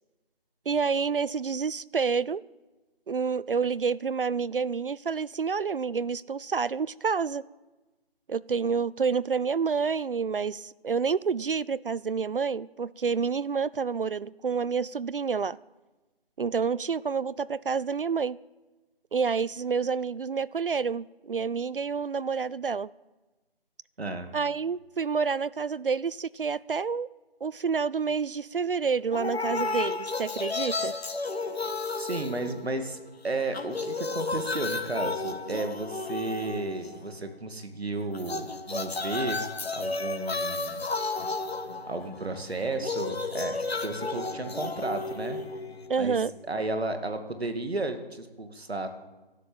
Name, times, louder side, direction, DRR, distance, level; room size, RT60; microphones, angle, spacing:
voice 1, 0.7-2.4 3.1-7.4 8.3-15.6 16.4-18.4 19.1-22.9 24.3-27.1 27.4-31.0 45.9-46.3, right 5 dB, 60° right, 0.4 m, -28 dB
voice 2, 24.0-24.3 32.0-39.4 39.7-40.9 41.9-45.4 46.0-46.2 46.5-48.9, right 2 dB, 85° right, 2.3 m, -33 dB
sound 1, 29.1-33.1 33.4-37.2 38.1-46.1, left 3 dB, 80° left, 1.6 m, -33 dB
13.0 x 12.0 x 8.6 m
figure-of-eight pair, 175°, 31 cm